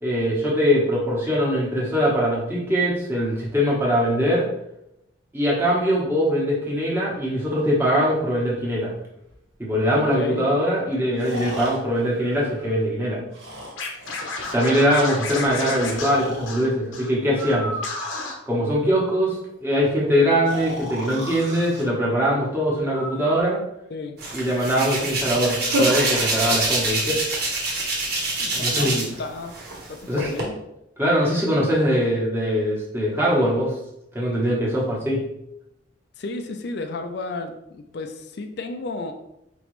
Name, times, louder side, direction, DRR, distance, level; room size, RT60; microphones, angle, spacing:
voice 1, 0.0-4.4 5.3-8.9 9.6-13.2 14.5-17.7 18.5-23.6 24.3-27.2 28.5-29.0 30.1-30.2 31.0-33.7 34.1-35.2, equal, 10° right, -5 dB, 1.1 m, -22 dB
Breathing, 9.3-9.4 11.2-12.9 13.3-14.6 15.8-16.5 17.3-18.5 20.5-21.8 22.9-23.4, equal, 75° right, 1.3 m, -35 dB
voice 2, 9.9-10.5 23.9-24.2 28.4-29.6 29.9-30.5 36.2-39.1, left 3 dB, 55° left, 6 dB, 0.4 m, -33 dB
Scratching (performance technique), 13.8-17.1 17.4-17.5 17.8-18.3, left 3 dB, 80° left, 0.8 m, -32 dB
Hands, 24.2-29.2 29.5-30.4, right 2 dB, 50° right, 1.3 m, -25 dB
5.0 x 3.0 x 3.1 m, 0.83 s
head